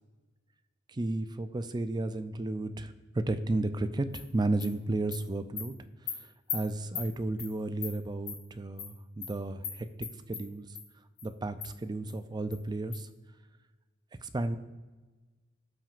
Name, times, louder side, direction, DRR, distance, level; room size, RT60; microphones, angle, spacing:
voice 1, 0.9-5.8 6.1-6.2 6.5-10.7 11.2-13.1 14.2-14.6, right 2 dB, 20° right, 10 dB, 0.4 m, -33 dB
Animal, 4.1-4.2 4.6-4.7 5.1-5.2 5.6-5.7 6.1-6.2 6.5-6.6 6.9-7.1 7.4-7.5 7.8-7.9 8.3-8.4 8.8-8.9 9.2-9.3 9.6-9.7 10.0-10.4 10.7-10.8 11.2-11.3 11.6-11.7 12.1-12.2 12.5-12.6 12.9-13.0, left 7 dB, 80° left, 2.9 m, -37 dB
17.0 x 5.9 x 2.5 m, 1.3 s
head